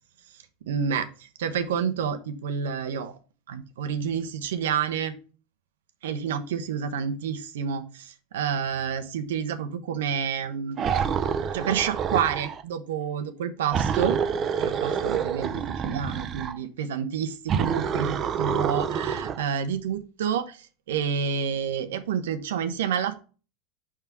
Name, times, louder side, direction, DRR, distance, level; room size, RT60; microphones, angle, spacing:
voice 1, 0.7-3.2 3.5-5.2 6.0-10.8 11.5-14.2 14.6-23.1, right 7 dB, 85° right, 9 dB, 0.8 m, -29 dB
sound 1, 10.8-12.6 13.7-16.6 17.5-19.5, right 7 dB, 35° right, 0.6 m, -27 dB
5.6 x 3.6 x 5.9 m, 0.36 s
supercardioid pair, 110°, 0 cm